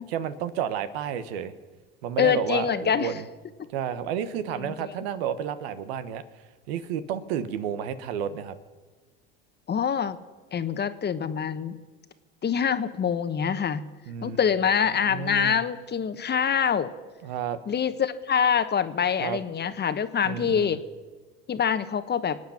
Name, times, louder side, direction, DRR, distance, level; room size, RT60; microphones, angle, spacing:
voice 1, 0.0-1.5 2.0-3.2 3.7-8.5 14.1-14.4 15.0-15.6 17.2-17.6 19.2-19.4 20.2-20.8, right 9 dB, 80° right, 12 dB, 1.2 m, -31 dB
voice 2, 2.2-3.1 4.6-4.7 9.7-10.2 10.5-11.8 12.4-13.9 14.2-16.9 17.7-20.8 21.5-22.4, left 7 dB, 35° left, 12 dB, 1.2 m, -25 dB
25.5 x 9.3 x 5.9 m, 1.3 s
hypercardioid pair, 75°, 31 cm